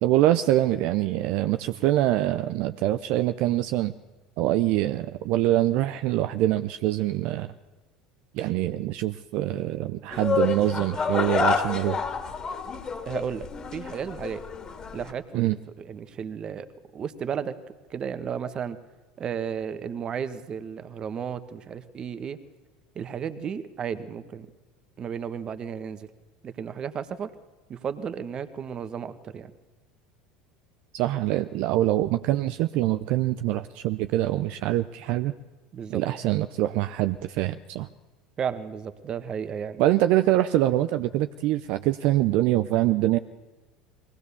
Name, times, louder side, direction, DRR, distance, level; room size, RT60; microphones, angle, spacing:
voice 1, 0.0-3.9 4.4-7.5 8.3-12.1 15.3-15.6 30.9-35.3 35.9-37.9 39.8-43.2, right 14 dB, 60° right, 11 dB, 0.6 m, -24 dB
sound 1, 10.1-15.1, left 5 dB, 30° left, 2.4 m, -29 dB
voice 2, 13.0-14.4 14.9-16.7 16.9-17.5 17.9-18.8 19.2-22.4 22.9-24.5 25.0-26.1 26.4-27.3 27.7-29.5 35.7-36.0 38.4-39.8, right 7 dB, 40° right, 11 dB, 1.4 m, -33 dB
21.5 x 18.0 x 7.0 m, 1.2 s
hypercardioid pair, 75°, 2 cm